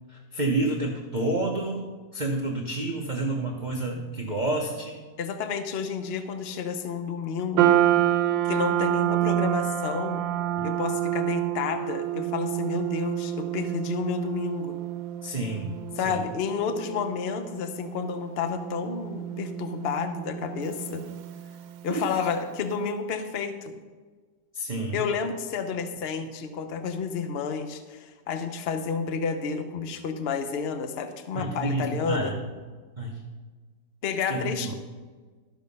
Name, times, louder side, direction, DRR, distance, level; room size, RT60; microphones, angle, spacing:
voice 1, 0.3-1.9 2.1-5.0 10.6-10.7 15.2-15.7 16.0-16.2 21.9-22.3 24.5-25.0 31.3-32.4 33.0-33.2 34.3-34.7, right 2 dB, 35° right, 0 dB, 0.8 m, -29 dB
voice 2, 5.2-7.7 8.5-10.2 10.6-14.8 16.0-21.0 21.8-23.7 24.9-32.3 34.0-34.7, left 6 dB, 50° left, 8 dB, 0.7 m, -30 dB
sound 1, 7.6-22.0, right 12 dB, 85° right, 1.4 m, -28 dB
13.0 x 6.4 x 5.4 m, 1.4 s
omnidirectional pair, 2.0 m